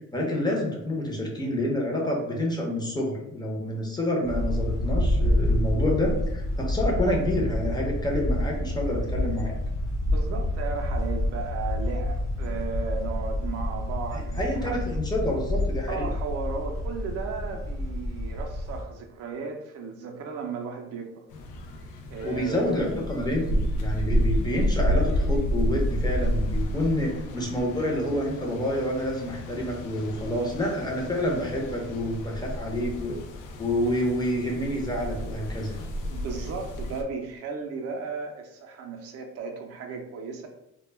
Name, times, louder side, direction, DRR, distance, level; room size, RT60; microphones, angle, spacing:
voice 1, 0.1-9.5 14.3-16.1 22.2-33.2 33.6-35.8, left 1 dB, 15° left, -2 dB, 0.5 m, -28 dB
sound 1, 4.2-18.8, left 1 dB, 55° left, 0.9 m, -28 dB
voice 2, 10.1-14.8 15.9-21.2 22.1-22.9 36.0-40.5, right 4 dB, 50° right, 3 dB, 0.4 m, -35 dB
sound 2, 21.3-37.0, equal, 75° left, 0.5 m, -30 dB
2.1 x 2.1 x 3.2 m, 0.83 s
cardioid pair, 130°, 32 cm